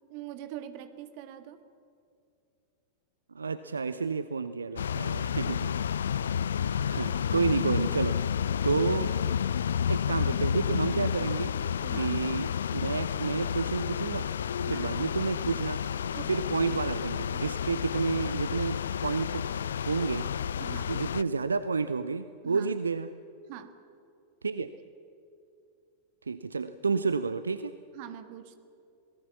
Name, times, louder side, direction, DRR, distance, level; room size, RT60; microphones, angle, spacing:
voice 1, 0.1-1.6 11.8-12.2 14.6-14.9 16.1-16.5 20.6-20.9 22.4-22.7 23.5-23.8 24.6-24.7 27.9-28.6, right 11 dB, 45° right, 10 dB, 1.7 m, -43 dB
voice 2, 3.3-5.7 6.9-9.1 9.9-11.6 12.0-14.3 14.7-19.4 19.8-20.3 20.9-23.1 24.4-24.7 26.3-27.8, right 4 dB, 75° right, 13 dB, 0.6 m, -30 dB
sound 1, 4.8-21.2, left 8 dB, 65° left, 0.4 m, -30 dB
27.0 x 18.5 x 7.1 m, 2.6 s
figure-of-eight pair, 90°, 0 cm